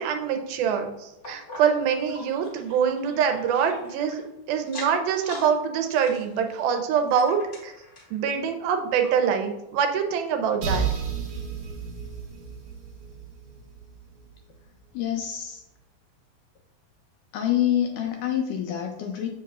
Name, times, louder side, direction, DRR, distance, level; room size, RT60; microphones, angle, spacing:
voice 1, 0.0-4.2 4.5-7.7 8.1-10.9, right 7 dB, 90° right, 5 dB, 2.6 m, -25 dB
sound 1, 1.2-4.2 4.6-5.5 5.8-8.2 8.7-8.8 9.0-9.1 9.8-9.9, left 2 dB, 35° left, 1.1 m, -43 dB
sound 2, 10.6-14.3, right 5 dB, 70° right, 1.3 m, -32 dB
voice 2, 14.9-15.6 17.3-19.3, left 10 dB, 80° left, 3 dB, 1.9 m, -26 dB
7.5 x 7.2 x 2.4 m, 0.95 s
omnidirectional pair, 4.2 m